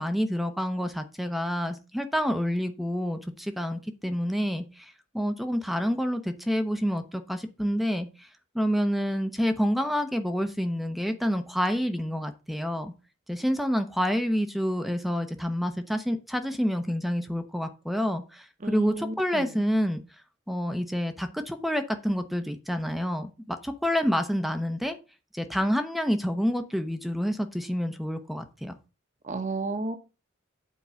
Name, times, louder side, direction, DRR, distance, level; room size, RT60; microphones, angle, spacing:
voice 1, 0.0-8.3 8.5-12.9 13.3-20.0 20.5-25.0 25.3-28.7, equal, ahead, 0.7 m, -28 dB
voice 2, 18.6-19.5 29.2-30.0, right 3 dB, 40° right, 1.0 m, -32 dB
8.6 x 4.6 x 6.9 m
head